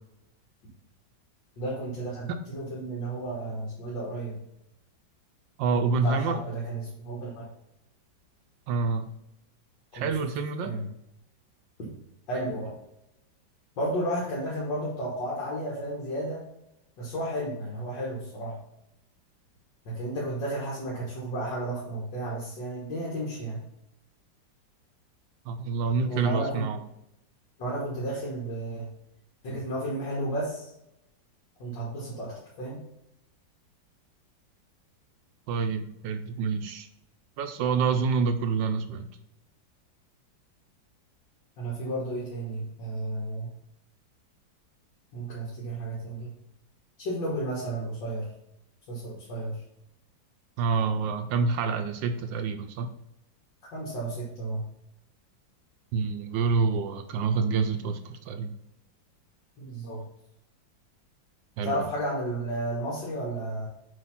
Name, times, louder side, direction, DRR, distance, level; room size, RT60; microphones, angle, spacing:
voice 1, 1.6-4.4 6.0-7.4 9.9-10.1 10.6-10.9 12.3-12.7 13.8-16.4 17.0-18.6 19.9-23.6 26.1-26.7 27.6-28.9 29.4-30.7 31.6-32.8 41.6-43.5 45.1-46.3 47.0-48.3 48.9-49.6 53.7-54.6 59.6-60.0 61.6-63.7, right 1 dB, 70° left, -6 dB, 2.2 m, -32 dB
voice 2, 5.6-6.3 8.7-9.1 9.9-10.7 25.5-26.8 35.5-36.9 37.4-39.1 50.6-52.9 55.9-58.5 61.6-61.8, right 5 dB, 75° right, 8 dB, 1.2 m, -27 dB
7.7 x 2.8 x 5.8 m, 0.82 s
omnidirectional pair, 2.1 m